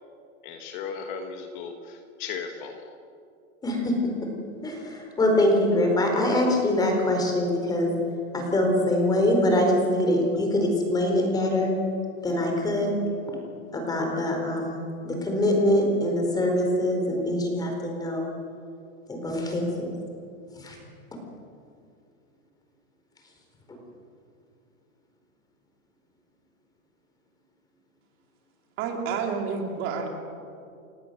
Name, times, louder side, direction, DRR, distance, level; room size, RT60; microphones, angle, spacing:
voice 1, 0.4-2.8, left 6 dB, 35° left, 4 dB, 1.7 m, -36 dB
voice 2, 3.6-4.3 4.6-7.9 8.3-11.7 12.2-12.9 13.7-18.3 19.1-19.9 20.6-20.8 21.1-21.2, left 1 dB, 10° left, 2 dB, 4.3 m, -24 dB
voice 3, 28.8-30.1, right 5 dB, 30° right, 3 dB, 2.7 m, -29 dB
30.0 x 17.0 x 7.9 m, 2.5 s
supercardioid pair, 165°, 43 cm